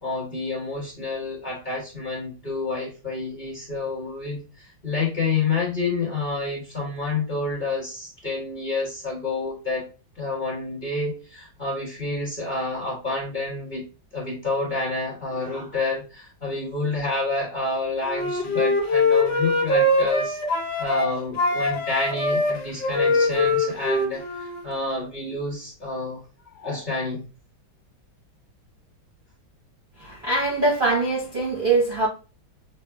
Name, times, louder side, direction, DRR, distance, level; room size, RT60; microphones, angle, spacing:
voice 1, 0.0-4.4 4.8-9.8 10.2-13.8 14.1-20.4 20.8-24.2 24.6-26.2 26.5-27.2, left 3 dB, 30° left, 1.0 m, -28 dB
Wind instrument woodwind instrument, 18.0-21.1 21.4-24.7, left 2 dB, 60° left, 1.5 m, -22 dB
voice 2, 30.0-32.1, right 3 dB, 45° right, 0.6 m, -22 dB
5.5 x 2.0 x 2.2 m
omnidirectional pair, 2.1 m